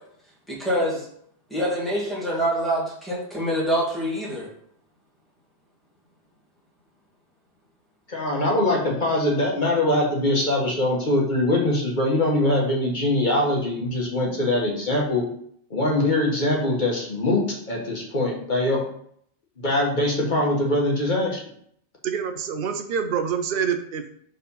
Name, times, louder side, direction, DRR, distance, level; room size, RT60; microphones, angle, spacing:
voice 1, 0.5-1.1 1.5-4.5, equal, ahead, -6 dB, 2.1 m, -25 dB
voice 2, 8.1-15.2 15.7-18.8 19.6-21.4, left 1 dB, 40° left, -2 dB, 1.6 m, -22 dB
voice 3, 22.0-24.2, right 7 dB, 55° right, 7 dB, 0.8 m, -27 dB
4.4 x 4.0 x 5.6 m, 0.66 s
omnidirectional pair, 1.2 m